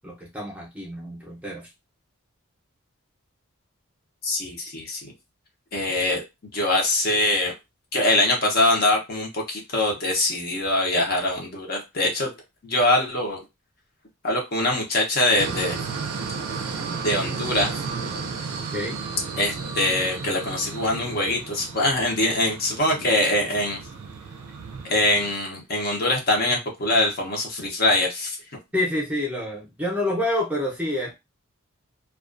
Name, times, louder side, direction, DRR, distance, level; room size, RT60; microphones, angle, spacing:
voice 1, 0.0-1.7 18.7-19.0 28.7-31.1, left 1 dB, 5° right, -3 dB, 0.6 m, -28 dB
voice 2, 4.2-5.1 5.7-6.2 6.5-7.5 7.9-12.3 12.6-13.4 14.2-15.8 17.0-17.7 19.4-23.8 24.9-28.4, left 1 dB, 45° left, 0 dB, 0.7 m, -23 dB
sound 1, 15.4-25.3, right 5 dB, 90° right, 0.4 m, -33 dB
2.3 x 2.3 x 2.4 m, 0.23 s
head